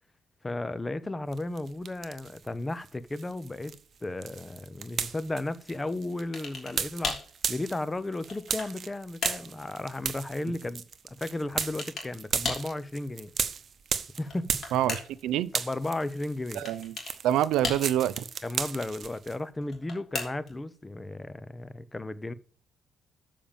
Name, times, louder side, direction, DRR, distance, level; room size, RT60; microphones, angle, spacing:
voice 1, 0.4-3.7 4.0-7.2 7.5-13.3 14.2-14.6 15.5-16.6 18.4-22.3, left 2 dB, 20° left, 0.7 m, -34 dB
sound 1, 1.3-2.5 2.8-15.2 15.5-19.4, right 7 dB, 50° right, 0.9 m, -35 dB
sound 2, 6.3-6.8 7.0-7.3 8.0-8.8 9.2-9.5 11.6-12.1 12.4-12.7 14.1-15.3 16.6-17.2 17.6-18.2 19.6-20.6, left 4 dB, 50° left, 3.4 m, -35 dB
voice 2, 14.7-15.5 16.6-17.0 17.2-18.1, right 12 dB, 90° right, 0.5 m, -26 dB
7.1 x 5.2 x 7.2 m
cardioid pair, 90°, 0 cm